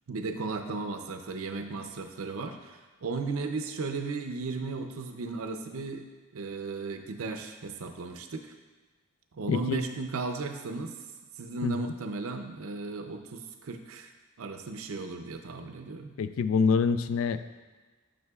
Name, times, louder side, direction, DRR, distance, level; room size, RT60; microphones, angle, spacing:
voice 1, 0.1-6.0 6.3-8.5 9.3-10.9 11.4-14.1 14.4-16.1, right 3 dB, 85° right, 6 dB, 0.6 m, -35 dB
voice 2, 9.5-9.8 11.6-11.8 16.2-17.4, left 5 dB, 75° left, 12 dB, 0.3 m, -26 dB
9.4 x 5.7 x 2.3 m, 1.3 s
head